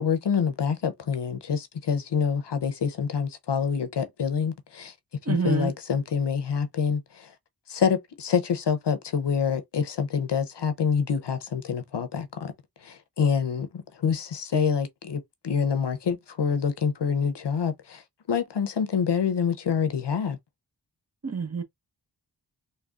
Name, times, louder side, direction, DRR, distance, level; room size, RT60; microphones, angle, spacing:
voice 1, 0.0-4.9 5.3-7.3 7.7-12.5 12.8-18.0 18.3-20.4, left 6 dB, 75° left, 0.6 m, -26 dB
voice 2, 5.2-5.7 21.2-21.6, right 4 dB, 35° right, 0.7 m, -27 dB
3.6 x 2.3 x 2.3 m
wide cardioid pair, 45°, 43 cm